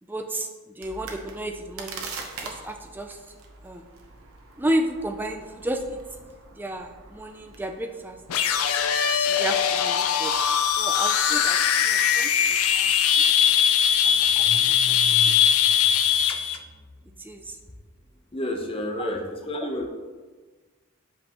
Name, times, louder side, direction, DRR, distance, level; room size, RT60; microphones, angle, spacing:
voice 1, 0.0-2.1 2.4-3.2 3.6-3.9 4.6-6.0 6.5-8.2 9.3-10.3 10.8-13.6 14.0-15.4 17.2-17.6, right 1 dB, 10° right, 5 dB, 0.3 m, -33 dB
sound 1, 0.8-12.9, right 4 dB, 70° right, 0.9 m, -45 dB
sound 2, 8.3-16.6, left 8 dB, 75° left, 0.5 m, -21 dB
Car / Engine starting, 12.4-12.5 12.8-18.1, equal, 40° right, 1.3 m, -42 dB
voice 2, 18.3-19.9, left 1 dB, 25° left, 2 dB, 0.7 m, -30 dB
7.9 x 5.3 x 2.9 m, 1.4 s
head